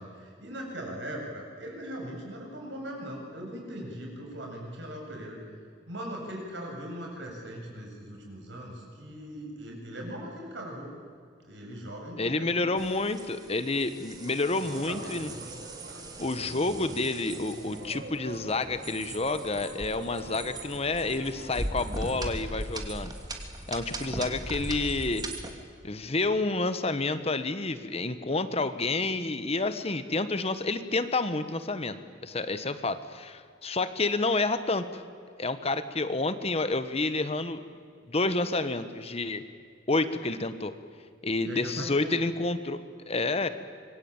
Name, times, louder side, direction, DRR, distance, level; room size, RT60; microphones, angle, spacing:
voice 1, 0.0-5.4 5.9-10.9 11.4-12.7 14.7-15.4 41.4-42.2, equal, 75° right, 0 dB, 7.9 m, -40 dB
voice 2, 12.2-15.3 16.2-23.1 23.7-25.3 25.8-32.0 32.2-35.0 35.4-37.6 38.1-39.4 39.9-40.7 41.2-43.5, left 3 dB, 35° left, 11 dB, 1.3 m, -29 dB
sound 1, 12.8-25.5, right 1 dB, 20° right, 2.8 m, -39 dB
sound 2, 14.5-22.6, right 1 dB, 60° right, 3.4 m, -45 dB
26.0 x 23.0 x 9.0 m, 2.2 s
head